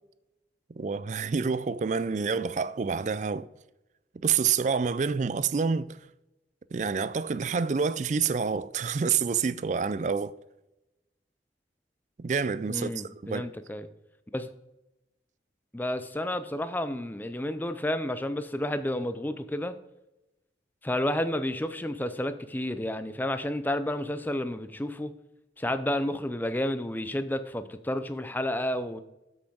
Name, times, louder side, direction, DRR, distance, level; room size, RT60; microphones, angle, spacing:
voice 1, 0.8-3.5 4.1-6.0 6.7-10.3 12.2-12.9 13.2-13.5, right 5 dB, 40° right, 0.4 m, -28 dB
voice 2, 12.7-13.9 14.3-14.5 15.7-19.7 20.8-25.1 25.6-29.0, left 1 dB, 10° left, 0.5 m, -31 dB
7.7 x 7.0 x 4.7 m
head